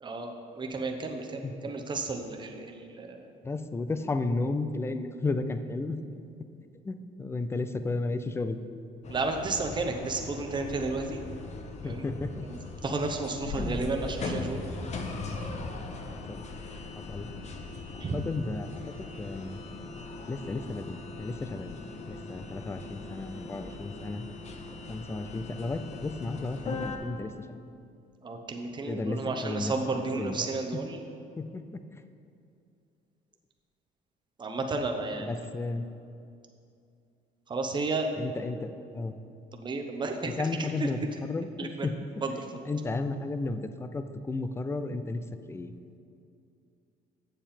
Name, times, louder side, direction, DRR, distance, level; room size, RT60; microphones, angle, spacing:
voice 1, 0.0-3.3 9.1-11.2 11.8-12.0 12.4-14.6 18.0-18.2 28.2-31.0 34.4-35.5 37.5-38.1 39.6-40.3 40.6-40.9 41.6-41.9 42.2-42.3, right 3 dB, 25° right, 4 dB, 0.8 m, -32 dB
voice 2, 3.4-6.0 6.8-8.6 11.8-12.4 13.5-13.8 16.3-16.4 17.0-17.3 17.9-18.8 19.2-19.6 20.3-21.8 22.1-24.3 24.9-27.3 28.9-29.7 30.2-30.8 31.4-31.8 35.2-35.9 38.2-39.1 40.2-41.9 42.4-45.2 45.5-45.7, left 3 dB, 15° left, 10 dB, 0.4 m, -33 dB
sound 1, 9.0-27.0, left 3 dB, 40° left, 0.8 m, -40 dB
7.7 x 7.0 x 4.3 m, 2.5 s
cardioid pair, 110°, 17 cm